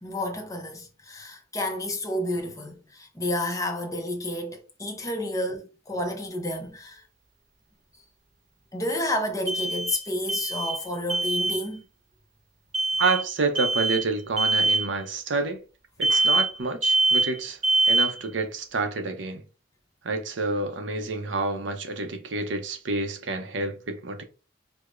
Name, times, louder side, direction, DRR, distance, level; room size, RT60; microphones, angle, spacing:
voice 1, 0.0-7.0 8.7-11.8 16.1-16.3, left 1 dB, 20° left, 0.6 m, -30 dB
sound 1, 6.2-6.3 9.5-10.0 10.3-10.8 11.1-11.6 12.7-13.2 13.5-14.0 14.4-14.9 16.0-16.6 16.8-17.4 17.6-18.2, right 2 dB, 35° right, 0.9 m, -23 dB
voice 2, 13.0-15.6 16.0-17.6 17.9-19.4 20.0-24.2, right 3 dB, 75° right, 0.6 m, -28 dB
4.7 x 2.1 x 2.4 m
head